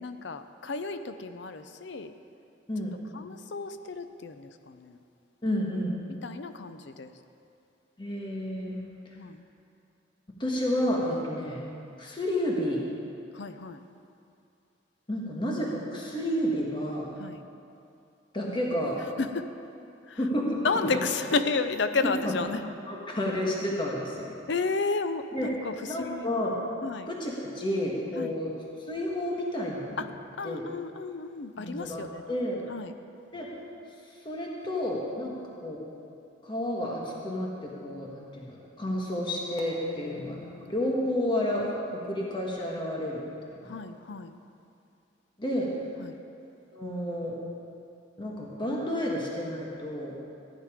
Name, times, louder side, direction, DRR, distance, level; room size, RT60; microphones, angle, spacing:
voice 1, 0.0-2.1 3.1-5.0 6.2-7.1 9.2-9.4 13.3-13.8 17.2-17.4 19.2-19.5 20.1-20.2 20.6-22.6 24.5-26.3 26.8-27.1 28.2-28.3 30.0-30.1 30.4-32.1 32.7-32.9 39.8-40.7 43.6-44.4 46.0-46.2, left 4 dB, 65° left, 10 dB, 0.6 m, -32 dB
voice 2, 5.4-6.0 8.0-8.8 10.4-11.7 12.0-12.8 15.1-17.1 18.3-19.0 20.2-20.6 20.9-21.0 22.2-22.4 22.9-24.3 25.3-25.5 25.9-26.6 27.1-28.5 28.9-30.0 30.4-30.6 31.6-32.7 33.3-33.5 34.2-35.8 36.4-40.4 40.7-43.2 43.6-43.8 45.4-45.7 46.7-47.4 48.2-50.2, left 1 dB, 25° left, -2 dB, 1.5 m, -31 dB
14.5 x 9.3 x 5.0 m, 2.6 s
head